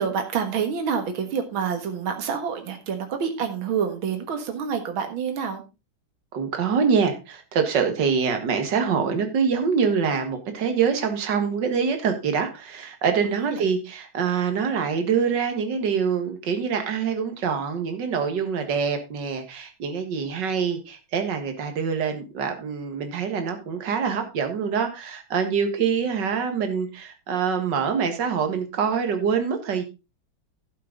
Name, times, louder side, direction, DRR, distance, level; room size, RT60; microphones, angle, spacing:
voice 1, 0.0-5.6 13.4-13.6, right 6 dB, 75° right, 6 dB, 2.3 m, -27 dB
voice 2, 6.3-29.8, right 6 dB, 60° right, 6 dB, 2.2 m, -25 dB
11.5 x 7.7 x 3.8 m, 0.27 s
omnidirectional pair, 2.3 m